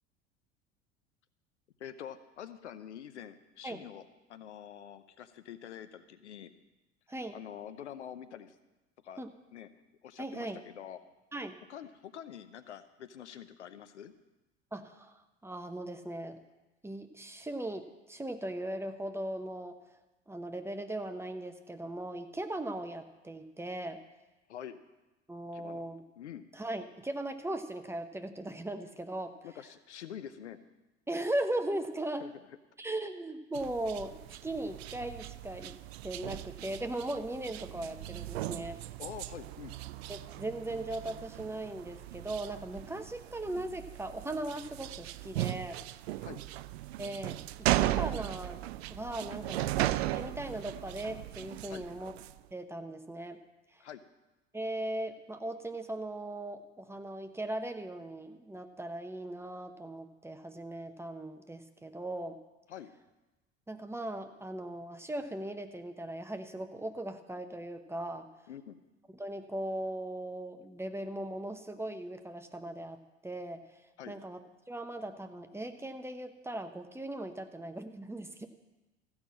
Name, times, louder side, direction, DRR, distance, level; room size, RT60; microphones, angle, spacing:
voice 1, 1.8-4.0 4.3-6.5 7.3-8.5 9.0-9.2 9.5-9.7 10.0-11.0 11.7-14.1 24.5-24.8 25.5-25.8 26.2-26.5 29.4-30.6 32.2-32.3 39.0-39.7 46.2-46.4 51.7-51.8 53.8-54.0 62.7-62.9 68.5-68.8 74.0-74.2, left 9 dB, 75° left, 12 dB, 0.7 m, -46 dB
voice 2, 10.2-10.6 11.3-11.6 14.7-16.4 16.8-19.8 20.3-24.0 25.3-26.0 26.5-29.3 31.1-32.3 32.8-35.7 36.0-38.8 40.1-45.8 47.0-48.6 48.9-49.7 50.1-52.1 52.5-53.4 53.7-53.8 54.5-62.4 63.7-68.3 69.1-73.6 74.1-74.4 74.7-78.5, right 1 dB, 5° right, 7 dB, 0.9 m, -38 dB
sound 1, 33.5-52.4, right 15 dB, 65° right, 0.5 m, -37 dB
14.5 x 5.9 x 7.6 m, 1.0 s
figure-of-eight pair, 70°, 35 cm